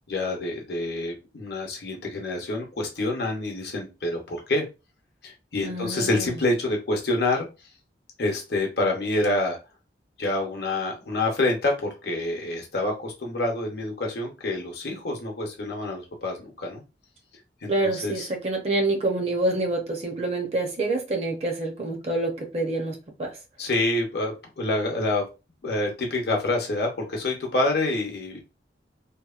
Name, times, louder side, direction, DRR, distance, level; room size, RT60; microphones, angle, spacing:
voice 1, 0.1-4.6 5.2-7.5 8.2-9.6 10.2-16.8 17.6-18.3 23.6-25.2 25.6-28.4, left 2 dB, 65° left, 0.8 m, -27 dB
voice 2, 5.6-6.4 17.7-23.4, right 2 dB, 35° right, 0.6 m, -27 dB
2.8 x 2.1 x 2.4 m
head